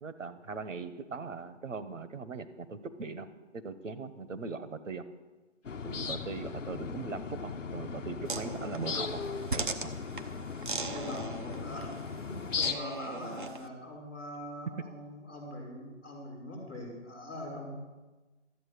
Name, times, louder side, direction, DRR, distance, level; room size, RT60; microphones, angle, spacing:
voice 1, 0.0-3.3 3.6-5.1 5.8-9.2 9.5-9.9, right 4 dB, 90° right, 11 dB, 1.1 m, -40 dB
sound 1, 5.6-12.7, left 5 dB, 80° left, 1.2 m, -37 dB
sound 2, 8.3-13.7, right 3 dB, 40° right, 0.8 m, -39 dB
voice 2, 10.9-17.7, left 1 dB, 15° left, -10 dB, 3.8 m, -42 dB
13.5 x 8.4 x 6.6 m, 1.2 s
hypercardioid pair, 175°, 37 cm